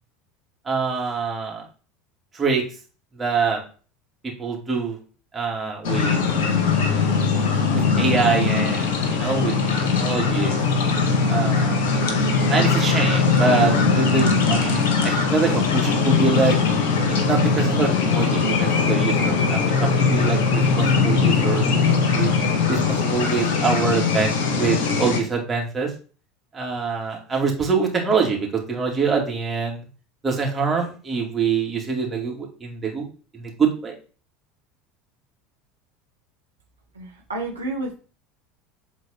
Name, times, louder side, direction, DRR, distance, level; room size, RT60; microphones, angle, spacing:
voice 1, 0.6-1.6 2.3-2.6 3.1-3.6 4.2-5.0 5.3-6.2 7.7-10.6 11.2-11.8 12.5-16.6 17.1-22.3 22.7-25.9 26.5-29.9 30.2-33.1 33.3-33.9, right 5 dB, 20° right, -1 dB, 2.7 m, -25 dB
sound 1, 5.8-25.2, left 5 dB, 60° left, 1.7 m, -20 dB
voice 2, 36.9-37.9, right 2 dB, 80° right, -1 dB, 1.5 m, -30 dB
8.4 x 4.0 x 4.5 m, 0.38 s
figure-of-eight pair, 70°, 0 cm